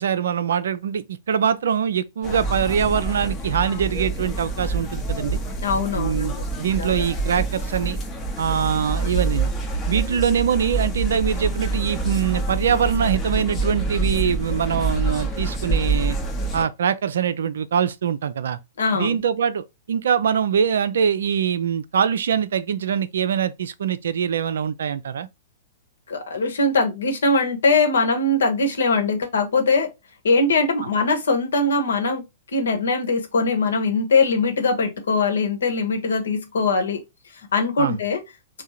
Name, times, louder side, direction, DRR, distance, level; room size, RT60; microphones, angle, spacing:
voice 1, 0.0-5.4 5.9-8.0 8.4-9.5 9.9-16.2 16.5-18.6 18.9-25.3 37.8-38.0, right 7 dB, 65° right, 0.4 m, -23 dB
sound 1, 2.2-16.7, right 3 dB, 20° left, 0.8 m, -26 dB
voice 2, 5.6-6.4 6.8-7.1 18.8-19.2 26.1-29.9 30.2-32.2 32.5-37.0 37.5-38.2, left 3 dB, 65° left, 1.1 m, -21 dB
3.6 x 2.2 x 4.2 m
figure-of-eight pair, 105°, 0 cm